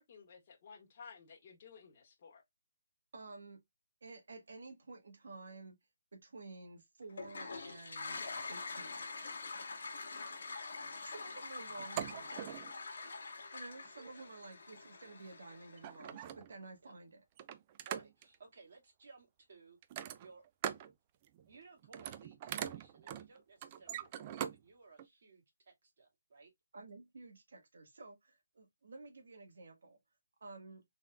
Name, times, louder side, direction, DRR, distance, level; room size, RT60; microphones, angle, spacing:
voice 1, 0.0-2.4, left 5 dB, 35° left, 1.5 m, -55 dB
voice 2, 3.1-3.6 4.0-5.8 6.1-9.0 11.1-12.5 13.5-17.2 26.7-30.0 30.4-30.8, right 3 dB, 70° right, 1.4 m, -52 dB
Toilet flush, 7.1-16.0, left 3 dB, 65° left, 1.5 m, -45 dB
voice 3, 10.7-11.6 13.0-13.2 16.8-16.9 17.9-20.4 21.5-26.5, right 4 dB, 50° right, 2.1 m, -60 dB
sound 1, 11.8-12.8 13.9-14.1 15.3-15.4 15.7-16.7 17.4-18.4 19.8-20.9 21.2-21.6 21.8-24.6 25.0-25.1, right 10 dB, 25° right, 0.3 m, -42 dB
3.9 x 3.4 x 2.3 m
hypercardioid pair, 160°, 0 cm